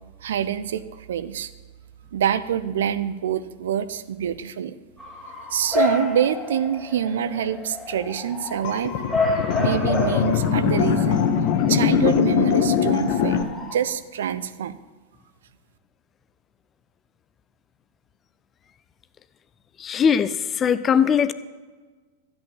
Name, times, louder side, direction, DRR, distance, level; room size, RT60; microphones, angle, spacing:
voice 1, 0.2-1.5 2.1-4.7 5.5-8.9 9.6-11.3 11.7-14.8, right 9 dB, 60° right, 14 dB, 0.6 m, -26 dB
Bark / Motor vehicle (road) / Siren, 5.0-13.7, left 2 dB, 5° left, 2.5 m, -30 dB
sound 1, 8.6-13.4, left 8 dB, 45° left, 1.0 m, -21 dB
voice 2, 19.8-21.3, left 7 dB, 25° left, 15 dB, 0.5 m, -20 dB
13.5 x 8.3 x 7.4 m, 1.4 s
figure-of-eight pair, 90°, 0 cm